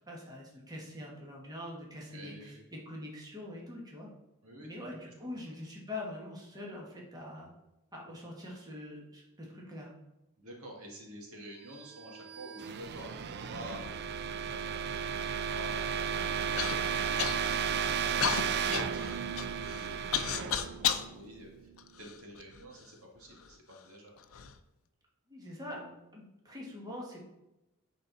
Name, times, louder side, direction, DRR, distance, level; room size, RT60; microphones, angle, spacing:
voice 1, 0.1-4.1 4.6-7.5 7.9-9.9 25.3-27.2, left 1 dB, 20° right, -3 dB, 1.6 m, -44 dB
voice 2, 2.1-2.6 4.4-5.3 10.4-13.9 14.4-15.1 15.4-17.5 18.0-24.1, equal, 75° right, -1 dB, 2.0 m, -50 dB
sound 1, 11.9-21.7, right 7 dB, 50° right, 0.4 m, -34 dB
Human voice / Cough, 16.6-16.8 17.2-17.7 18.2-21.1 21.8-22.6 23.4-23.5 24.2-24.5, left 9 dB, 70° left, 0.6 m, -33 dB
11.0 x 4.3 x 4.1 m, 0.93 s
head